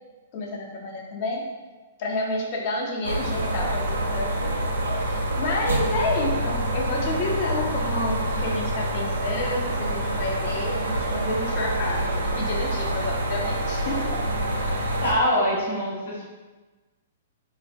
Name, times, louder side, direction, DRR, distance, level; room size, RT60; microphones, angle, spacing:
voice 1, 0.3-1.4 2.0-4.5 4.9-14.2, left 2 dB, 45° left, -1 dB, 0.5 m, -30 dB
sound 1, 3.0-15.1, right 1 dB, 80° right, 0.4 m, -26 dB
voice 2, 15.0-16.2, equal, 75° left, -6 dB, 1.0 m, -23 dB
2.4 x 2.1 x 2.6 m, 1.3 s
figure-of-eight pair, 115°, 0 cm